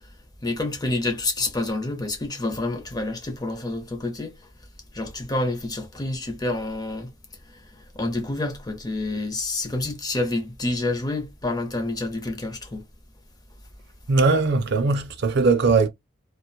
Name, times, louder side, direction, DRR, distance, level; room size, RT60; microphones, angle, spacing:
voice 1, 0.4-4.4 4.9-7.1 7.9-12.8, left 2 dB, 20° left, 0.6 m, -28 dB
voice 2, 14.1-15.9, right 4 dB, 55° right, 0.5 m, -20 dB
2.9 x 2.1 x 2.2 m
head